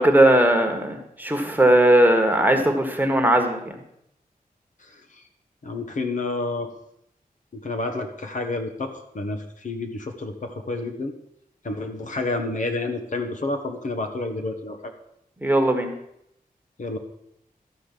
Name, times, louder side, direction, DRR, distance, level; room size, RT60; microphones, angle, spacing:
voice 1, 0.0-3.6 15.4-15.9, right 1 dB, 10° right, 3 dB, 1.4 m, -18 dB
voice 2, 4.8-5.2 5.6-6.7 7.5-11.1 11.6-14.9 16.8-17.0, left 2 dB, 55° left, 5 dB, 1.2 m, -29 dB
12.5 x 5.0 x 7.6 m, 0.77 s
wide cardioid pair, 125°, 16 cm